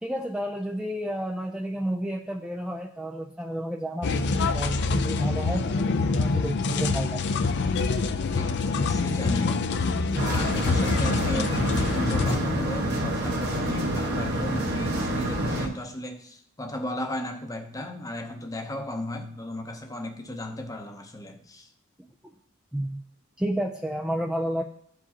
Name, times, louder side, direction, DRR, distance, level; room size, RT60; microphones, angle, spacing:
voice 1, 0.0-7.2 10.1-10.4 22.7-23.0 23.4-24.6, equal, 5° right, 0.4 m, -31 dB
sound 1, 4.0-12.4, left 4 dB, 55° left, 0.5 m, -26 dB
voice 2, 8.4-9.9 10.2-21.7, left 1 dB, 15° left, 0.7 m, -35 dB
sound 2, 10.2-15.7, right 1 dB, 50° right, 1.2 m, -27 dB
13.5 x 4.7 x 2.8 m
head